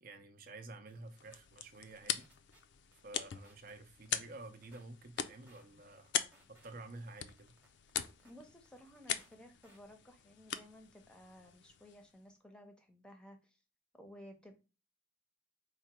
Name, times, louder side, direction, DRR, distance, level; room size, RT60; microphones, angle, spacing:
voice 1, 0.0-2.3 2.9-6.1 6.5-7.5, right 2 dB, 50° right, 0.6 m, -51 dB
sound 1, 0.9-1.0 1.3-1.4 1.7-2.6 2.9-3.7 4.1-4.8 5.2-5.6 6.1-6.7 7.1-8.3 8.7-9.3 9.6-9.8, right 1 dB, 10° right, 1.0 m, -66 dB
sound 2, 1.0-12.2, left 9 dB, 60° left, 0.4 m, -43 dB
voice 2, 8.2-13.6 13.9-14.6, equal, 5° left, 0.7 m, -56 dB
4.8 x 2.2 x 4.2 m
head